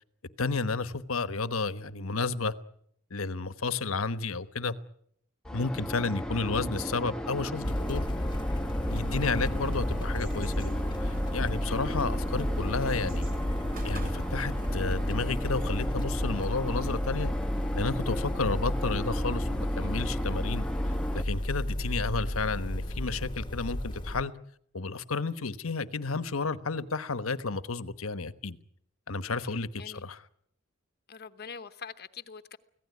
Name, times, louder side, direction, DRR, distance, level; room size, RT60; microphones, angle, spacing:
voice 1, 0.4-2.5 3.1-4.7 5.5-8.1 8.9-13.3 13.8-17.3 17.7-20.6 21.1-24.3 24.7-28.6 29.1-30.2, left 4 dB, 80° left, 1.2 m, -32 dB
sound 1, 5.4-21.2, equal, 5° left, 1.0 m, -36 dB
sound 2, 7.6-24.2, left 1 dB, 20° left, 1.2 m, -32 dB
sound 3, 8.9-15.9, right 1 dB, 45° right, 3.1 m, -42 dB
voice 2, 31.1-32.6, left 6 dB, 50° left, 1.0 m, -43 dB
24.5 x 17.0 x 9.5 m
head